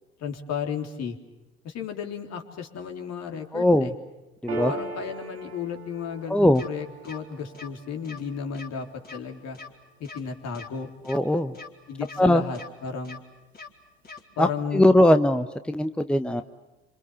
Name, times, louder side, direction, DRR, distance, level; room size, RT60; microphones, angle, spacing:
voice 1, 0.2-1.2 1.6-3.9 4.7-8.9 9.1-9.6 10.0-10.9 11.9-13.2 14.4-14.9, left 6 dB, 55° left, 4 dB, 3.6 m, -33 dB
voice 2, 3.5-3.9 4.4-4.7 6.3-6.6 11.1-11.5 12.2-12.4 14.4-14.5 14.7-16.4, left 1 dB, 5° left, 9 dB, 1.1 m, -20 dB
Piano, 4.5-11.4, right 2 dB, 90° right, 3.7 m, -40 dB
sound 1, 6.5-6.7 7.0-7.2 7.5-7.7 8.0-8.2 8.5-8.7 9.0-9.2 9.5-9.7 10.0-10.2 10.5-10.7 11.0-11.2 11.5-11.7 12.0-12.2 12.5-12.7 13.0-13.2 13.5-13.7 14.0-14.2, left 4 dB, 30° left, 4.6 m, -42 dB
27.5 x 27.0 x 7.1 m, 1.0 s
hypercardioid pair, 60°, 32 cm